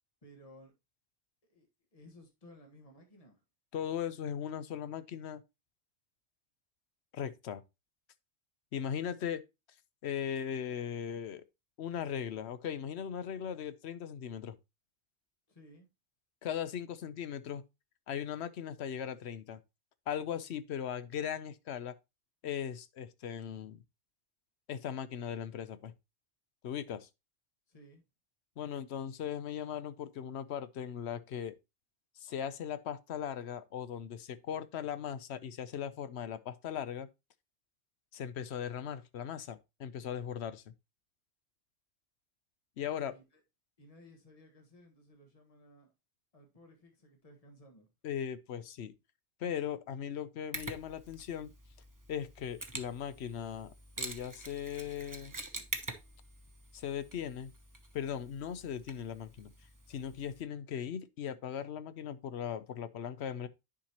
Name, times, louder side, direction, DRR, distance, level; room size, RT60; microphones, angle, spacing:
voice 1, 0.2-0.7 1.5-3.4 15.5-15.9 27.7-28.0 42.9-43.4 43.8-45.9 46.3-47.9, equal, 35° left, 1.6 m, -58 dB
voice 2, 3.7-5.4 7.1-7.6 8.7-9.4 10.0-11.4 11.8-14.6 16.4-17.6 18.1-19.6 20.1-22.0 22.4-23.8 24.7-25.9 26.6-27.1 28.6-31.5 32.2-37.1 38.1-40.7 42.8-43.2 48.0-48.9 49.4-51.5 52.1-55.3 56.7-57.5 57.9-59.5 59.9-63.5, left 8 dB, 75° left, 1.0 m, -38 dB
Mechanisms, 50.5-60.4, right 2 dB, 20° right, 0.8 m, -46 dB
10.0 x 4.9 x 2.9 m
omnidirectional pair, 1.2 m